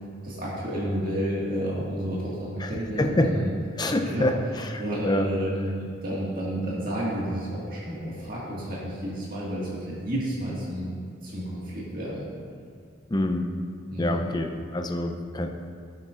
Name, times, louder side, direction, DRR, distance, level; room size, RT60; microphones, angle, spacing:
voice 1, 0.2-3.5 3.8-4.3 4.8-11.0 11.2-12.3 13.9-14.2, equal, 45° right, -7 dB, 1.9 m, -31 dB
voice 2, 2.6-3.4 3.8-5.3 13.1-13.5 14.0-15.5, left 1 dB, 20° left, 4 dB, 0.6 m, -26 dB
16.5 x 6.5 x 2.5 m, 2.3 s
head